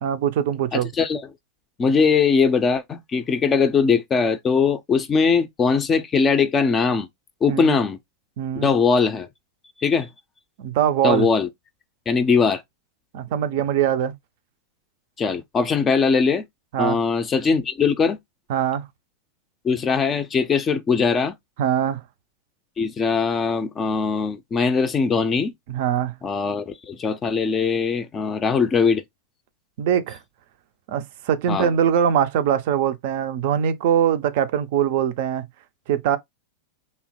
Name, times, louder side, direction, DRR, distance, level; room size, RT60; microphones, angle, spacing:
voice 1, 0.0-0.9 7.5-7.8 8.4-8.7 10.6-11.3 13.1-14.1 16.7-17.0 18.5-18.9 21.6-22.0 25.7-26.1 29.8-30.2 30.9-35.4 35.9-36.2, right 9 dB, 50° right, 0.4 m, -22 dB
voice 2, 0.7-1.2 1.8-7.1 7.4-8.0 8.6-9.3 9.8-10.1 11.0-11.5 12.1-12.6 15.2-16.5 16.8-18.2 19.6-21.4 22.8-25.5 26.2-29.0 31.5-31.7, left 5 dB, 20° left, 0.4 m, -21 dB
2.8 x 2.0 x 2.9 m
figure-of-eight pair, 90°, 0 cm